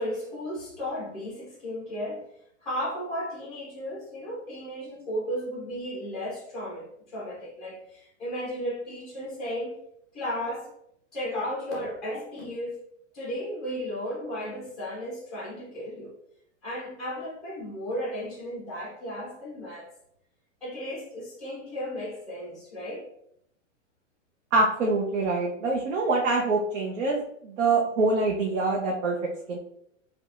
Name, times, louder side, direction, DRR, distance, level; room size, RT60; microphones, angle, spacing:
voice 1, 0.0-2.2 2.6-9.8 10.1-10.7 11.1-12.8 13.1-16.1 16.6-19.9 20.6-23.1, equal, ahead, -6 dB, 0.4 m, -34 dB
voice 2, 24.5-29.2 29.5-29.6, right 3 dB, 75° right, -1 dB, 0.7 m, -25 dB
4.4 x 2.3 x 2.4 m, 0.73 s
supercardioid pair, 165°, 38 cm